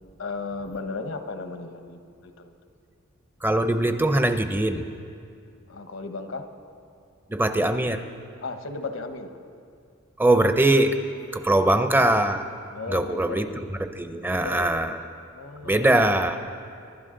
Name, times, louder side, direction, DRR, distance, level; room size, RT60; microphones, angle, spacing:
voice 1, 0.2-2.5 5.7-6.5 8.4-9.3 12.7-13.7 14.3-14.7 15.3-15.9, left 3 dB, 80° left, 7 dB, 1.0 m, -35 dB
voice 2, 3.4-4.8 7.3-8.0 10.2-11.0 11.3-12.5 12.9-13.5 13.8-14.9 15.6-16.4, right 1 dB, 10° right, 8 dB, 0.6 m, -21 dB
24.0 x 12.0 x 3.8 m, 2.3 s
head